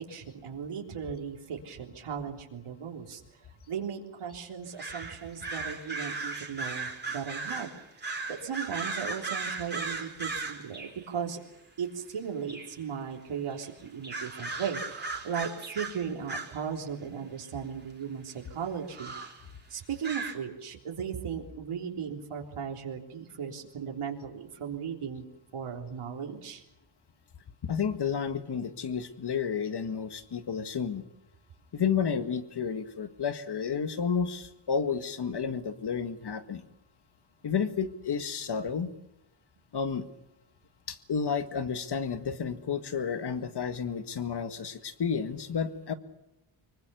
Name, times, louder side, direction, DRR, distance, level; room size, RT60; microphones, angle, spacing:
voice 1, 0.0-3.2 3.7-7.7 8.0-11.4 11.8-19.1 19.7-25.2 25.5-26.6, right 7 dB, 80° right, 1 dB, 3.7 m, -37 dB
sound 1, 4.8-11.0 12.1-12.2 12.5-12.8 13.5-13.7 14.0-16.8 17.4-17.5 18.3-18.4 18.9-19.4 20.0-20.3, right 3 dB, 20° right, 3.7 m, -37 dB
voice 2, 27.6-31.0 31.7-36.6 37.4-38.9 39.7-40.0 40.9-45.9, left 6 dB, 50° left, 10 dB, 1.8 m, -31 dB
25.0 x 23.0 x 6.9 m, 0.88 s
wide cardioid pair, 140°, 50 cm